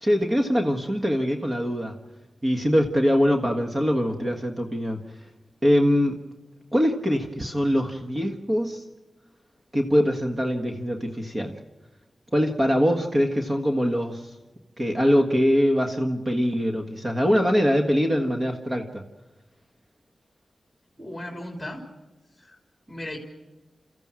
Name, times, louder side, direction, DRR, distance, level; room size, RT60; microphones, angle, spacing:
voice 1, 0.0-2.0 2.4-5.0 5.6-6.2 6.7-8.8 9.7-11.6 12.3-14.3 14.8-19.0, equal, 25° right, 3 dB, 1.6 m, -23 dB
voice 2, 21.0-21.8 22.4-22.6 22.9-23.2, left 1 dB, 5° left, 2 dB, 3.2 m, -36 dB
30.0 x 14.5 x 7.7 m, 1.1 s
wide cardioid pair, 120°, 0 cm